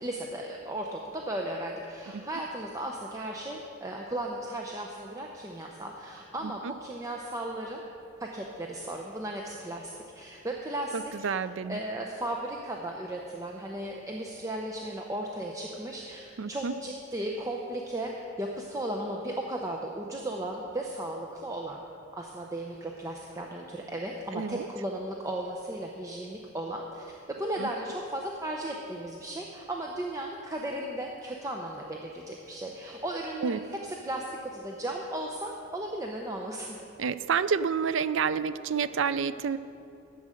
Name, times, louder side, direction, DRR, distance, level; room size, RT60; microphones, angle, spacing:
voice 1, 0.0-7.8 8.2-11.3 11.7-21.8 22.1-36.8, right 1 dB, 15° right, 0 dB, 0.6 m, -36 dB
voice 2, 10.9-11.8 16.4-16.7 24.3-24.7 27.6-27.7 33.4-33.6 37.0-39.6, right 6 dB, 65° right, 14 dB, 0.4 m, -29 dB
12.0 x 7.8 x 6.4 m, 2.8 s
head